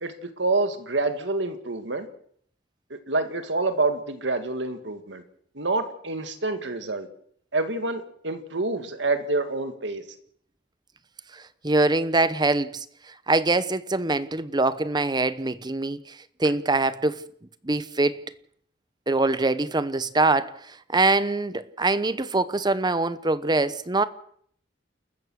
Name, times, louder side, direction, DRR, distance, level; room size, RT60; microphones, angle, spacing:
voice 1, 0.0-2.1 2.9-5.2 5.6-7.1 7.5-10.0, right 3 dB, 70° right, 2.1 m, -27 dB
voice 2, 11.6-12.8 13.3-16.0 16.4-17.2 17.6-18.2 19.1-20.5 20.9-24.0, right 2 dB, 25° right, 0.9 m, -23 dB
29.0 x 14.5 x 6.4 m
head